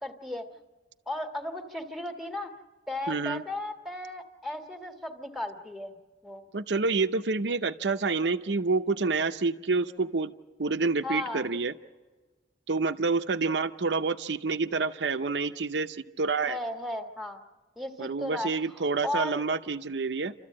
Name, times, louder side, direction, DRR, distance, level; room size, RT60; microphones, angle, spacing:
voice 1, 0.0-0.5 1.1-2.5 2.9-6.0 6.2-6.4 11.0-11.5 16.5-17.4 17.7-19.4, left 1 dB, ahead, 4 dB, 1.6 m, -35 dB
voice 2, 3.1-3.4 6.5-10.3 10.6-11.7 12.7-16.6 18.0-20.3, right 4 dB, 80° right, 9 dB, 0.7 m, -28 dB
30.0 x 13.5 x 8.6 m, 1.3 s
head